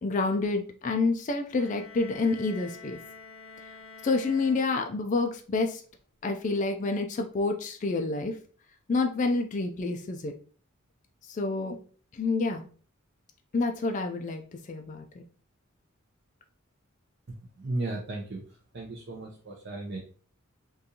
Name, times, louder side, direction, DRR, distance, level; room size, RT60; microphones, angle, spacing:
voice 1, 0.0-3.0 4.0-5.8 6.2-8.4 8.9-10.3 11.3-11.8 12.1-12.7 13.5-14.4 14.7-15.0, left 3 dB, 35° left, 4 dB, 0.3 m, -28 dB
sound 1, 1.4-5.3, left 5 dB, 70° left, 0.9 m, -48 dB
voice 2, 17.6-18.4 18.7-20.0, right 2 dB, 50° right, -3 dB, 0.6 m, -35 dB
3.7 x 2.5 x 2.8 m, 0.42 s
head